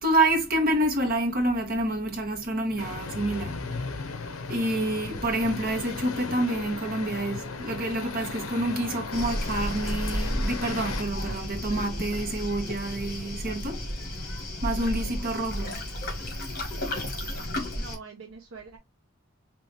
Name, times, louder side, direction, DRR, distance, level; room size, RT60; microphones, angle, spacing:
voice 1, 0.0-15.8, right 1 dB, 45° right, 1.5 m, -28 dB
sound 1, 2.8-11.0, left 4 dB, 75° left, 0.7 m, -36 dB
Waves surf, 9.1-18.0, left 1 dB, 45° left, 1.8 m, -32 dB
voice 2, 17.3-18.8, right 4 dB, 65° right, 0.8 m, -45 dB
4.3 x 3.0 x 3.3 m
head